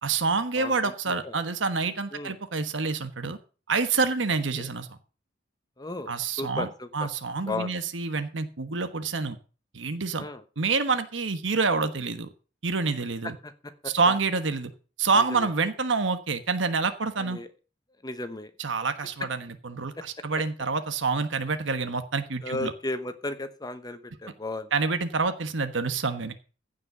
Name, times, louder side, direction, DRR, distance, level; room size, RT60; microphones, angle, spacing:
voice 1, 0.0-3.4 3.7-5.0 6.1-6.7 6.9-9.4 9.7-10.2 10.6-12.3 12.6-13.3 13.9-14.7 15.0-17.4 18.6-22.7 24.7-26.3, right 4 dB, 80° right, 9 dB, 1.2 m, -27 dB
voice 2, 0.6-1.3 2.1-2.3 4.6-4.7 5.8-6.1 6.4-7.1 7.4-7.7 10.2-10.4 13.2-14.1 15.2-15.5 17.2-17.5 18.0-18.5 20.0-20.1 22.4-24.7, left 2 dB, 20° left, 10 dB, 1.1 m, -35 dB
15.5 x 5.4 x 6.7 m, 0.36 s
head